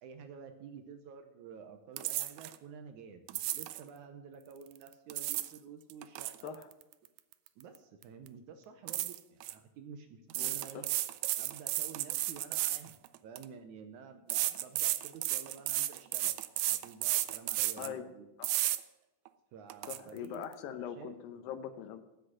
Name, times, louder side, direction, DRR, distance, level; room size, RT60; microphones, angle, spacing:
voice 1, 0.0-6.6 7.6-10.8 11.4-13.0 13.2-16.3 16.7-18.3 19.5-21.2, right 6 dB, 75° right, 7 dB, 2.0 m, -50 dB
sound 1, 2.0-2.5 3.3-3.8 4.9-5.6 5.9-7.8 8.0-8.3 8.9-9.5 10.3-13.4 14.3-17.9 18.4-18.8 19.3-19.4 19.7-20.0, right 15 dB, 90° right, 1.6 m, -33 dB
voice 2, 10.4-10.9 17.8-18.1 18.4-18.6 19.9-22.0, left 9 dB, 80° left, 10 dB, 2.6 m, -42 dB
8.3 x 7.6 x 8.8 m, 1.0 s
omnidirectional pair, 4.0 m